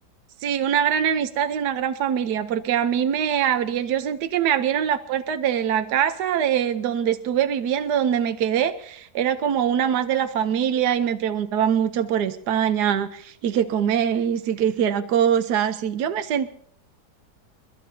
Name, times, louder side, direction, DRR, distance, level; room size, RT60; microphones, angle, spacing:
voice 1, 0.4-16.5, right 9 dB, 80° right, 9 dB, 1.3 m, -23 dB
30.0 x 13.5 x 2.7 m, 0.64 s
omnidirectional pair, 1.8 m